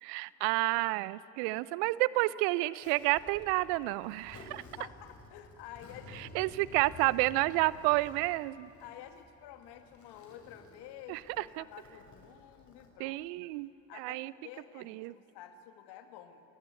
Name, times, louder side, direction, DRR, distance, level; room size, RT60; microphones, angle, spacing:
voice 1, 0.0-4.6 6.2-8.7 11.1-11.6 13.0-14.3 14.8-15.1, right 20 dB, 70° right, 20 dB, 0.7 m, -30 dB
Zipper (clothing), 2.8-12.9, left 2 dB, 45° left, 5.8 m, -53 dB
voice 2, 4.4-6.5 8.8-13.5 13.9-16.4, left 10 dB, 70° left, 7 dB, 2.1 m, -51 dB
29.5 x 18.5 x 9.4 m, 2.8 s
hypercardioid pair, 50°, 42 cm